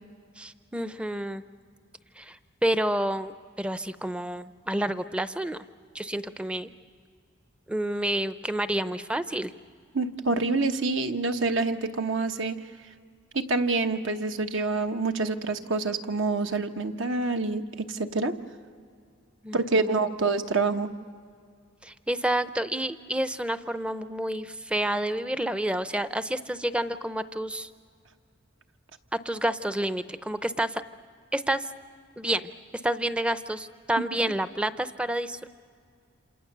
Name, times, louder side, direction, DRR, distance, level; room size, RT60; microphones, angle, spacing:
voice 1, 0.4-1.4 2.2-5.6 5.9-6.7 7.7-9.5 19.4-20.1 21.8-27.7 29.2-30.8 31.3-31.7 32.2-32.5 32.8-35.5, right 1 dB, 5° right, 12 dB, 0.6 m, -29 dB
voice 2, 9.9-12.6 13.3-18.4 19.5-20.9 34.0-34.3, right 3 dB, 70° right, 6 dB, 1.1 m, -27 dB
28.0 x 27.5 x 6.7 m, 2.3 s
head